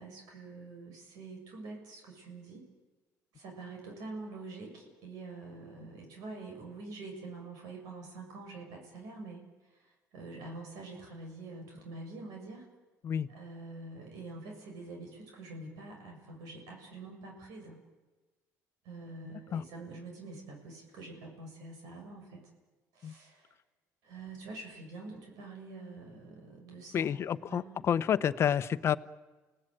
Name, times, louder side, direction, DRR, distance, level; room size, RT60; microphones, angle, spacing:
voice 1, 0.0-2.6 3.3-12.7 13.3-17.8 18.8-22.4 22.9-23.5 24.0-27.8, right 3 dB, 80° right, 1 dB, 7.0 m, -46 dB
voice 2, 26.9-29.0, left 9 dB, 45° left, 13 dB, 1.0 m, -29 dB
29.5 x 18.0 x 9.3 m, 1.2 s
cardioid pair, 125°, 6 cm